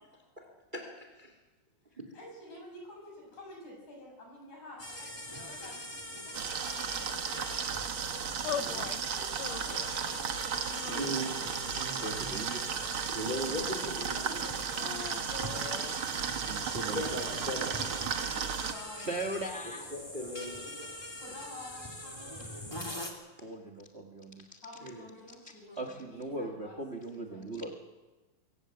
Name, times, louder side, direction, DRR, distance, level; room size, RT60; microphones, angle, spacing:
voice 1, 0.7-1.3 2.0-2.1 10.9-12.6 13.1-14.2 16.9-17.8 18.5-18.6 19.9-20.9 24.8-25.0 25.7-25.8, equal, 15° right, 3 dB, 2.9 m, -38 dB
voice 2, 2.1-7.5 9.1-10.3 14.1-16.0 18.6-19.1 21.2-22.8 24.6-26.8 27.1-27.7, left 1 dB, 55° left, 0 dB, 8.3 m, -50 dB
sound 1, 4.8-23.1, left 1 dB, 10° left, 1.9 m, -43 dB
sound 2, 6.3-18.7, right 7 dB, 60° right, 1.4 m, -35 dB
voice 3, 8.3-8.9 10.8-11.3 12.0-12.7 16.5-17.0 19.0-19.9 23.4-24.6 25.8-27.7, right 2 dB, 90° right, 3 dB, 0.5 m, -39 dB
sound 3, 8.4-9.0 9.4-10.1 10.7-11.6 12.3-13.3 14.7-16.1, left 10 dB, 90° left, 1.5 m, -41 dB
23.5 x 16.5 x 7.9 m, 1.2 s
omnidirectional pair, 4.1 m